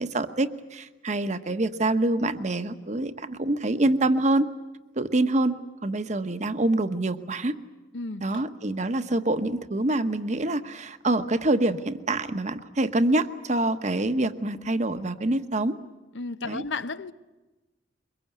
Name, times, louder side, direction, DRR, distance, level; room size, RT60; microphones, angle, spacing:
voice 1, 0.0-4.5 5.0-7.5 8.2-15.8 16.5-16.6, right 2 dB, 40° right, 1.1 m, -26 dB
voice 2, 7.9-8.3 16.1-17.1, left 3 dB, 80° left, 0.9 m, -33 dB
23.5 x 22.0 x 9.3 m
head